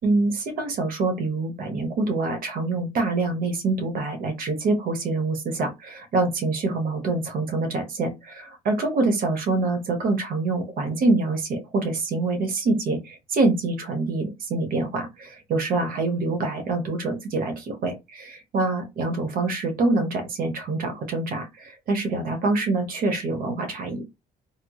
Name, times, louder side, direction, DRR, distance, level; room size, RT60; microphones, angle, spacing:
voice 1, 0.0-24.1, right 3 dB, 55° right, 5 dB, 1.2 m, -25 dB
3.4 x 3.0 x 2.3 m, 0.22 s
cardioid pair, 110°, 17 cm